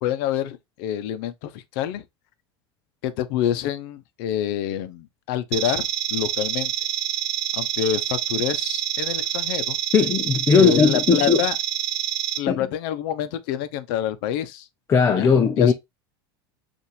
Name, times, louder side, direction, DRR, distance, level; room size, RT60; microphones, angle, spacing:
voice 1, 0.0-2.0 3.0-6.7 7.5-9.8 10.6-11.6 12.4-14.7 15.1-15.7, left 10 dB, 65° left, 0.7 m, -27 dB
sound 1, 5.5-12.4, right 11 dB, 50° right, 0.9 m, -27 dB
voice 2, 9.9-11.4 12.5-12.7 14.9-15.7, left 5 dB, 20° left, 0.5 m, -18 dB
5.6 x 2.6 x 3.0 m
supercardioid pair, 125°, 13 cm